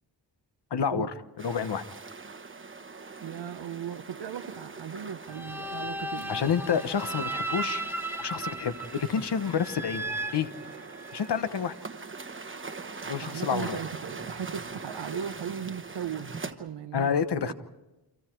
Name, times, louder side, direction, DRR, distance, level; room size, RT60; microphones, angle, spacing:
voice 1, 0.7-1.1 1.4-1.8 6.3-7.8 8.2-10.5 11.1-11.7 13.0-13.8 16.9-17.5, left 7 dB, 65° left, 1.1 m, -29 dB
sound 1, 1.4-16.5, right 4 dB, 30° right, 1.0 m, -42 dB
voice 2, 3.2-6.5 13.2-17.2 17.4-17.5, right 8 dB, 70° right, 0.8 m, -37 dB
sound 2, 5.3-11.3, right 1 dB, 5° right, 0.8 m, -36 dB
29.0 x 26.0 x 4.6 m
wide cardioid pair, 180°, 43 cm